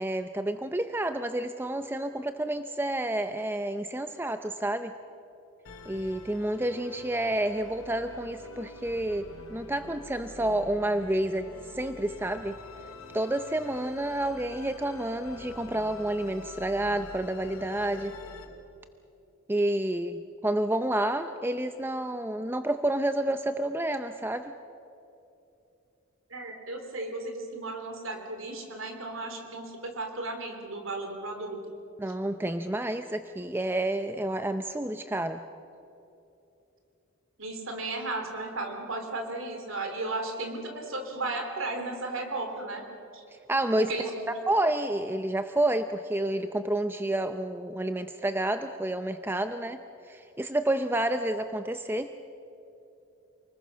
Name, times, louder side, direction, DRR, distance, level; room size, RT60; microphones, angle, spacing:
voice 1, 0.0-4.9 5.9-9.2 9.5-12.6 13.1-18.1 19.5-24.5 32.0-35.4 43.5-43.9 44.5-49.8 50.0-52.1, right 1 dB, 10° right, 8 dB, 0.5 m, -29 dB
Musical instrument, 5.6-18.4, left 2 dB, 75° left, 3.1 m, -46 dB
voice 2, 26.3-31.6 37.4-42.8 43.1-43.2 43.8-44.4, right 2 dB, 65° right, 4 dB, 3.3 m, -35 dB
28.5 x 20.5 x 6.3 m, 2.8 s
head